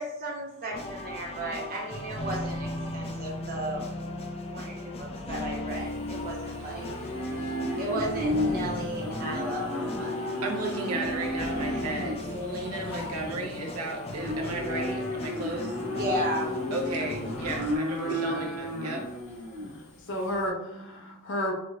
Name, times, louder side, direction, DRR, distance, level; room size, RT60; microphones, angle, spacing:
voice 1, 0.0-2.7 2.9-3.8 4.5-6.9 7.8-10.2 14.6-14.7 15.9-16.5, right 1 dB, 40° right, -2 dB, 0.8 m, -34 dB
sound 1, 0.7-17.8, left 2 dB, 25° left, 0.3 m, -37 dB
Livestock farm animals working animals, 5.7-20.4, left 1 dB, 85° left, 1.1 m, -33 dB
voice 2, 10.4-15.8 16.7-19.0, right 3 dB, 85° right, 1 dB, 0.7 m, -34 dB
voice 3, 18.1-18.4 19.7-21.5, left 1 dB, 60° left, 1 dB, 0.6 m, -34 dB
4.5 x 2.1 x 2.3 m, 0.84 s
head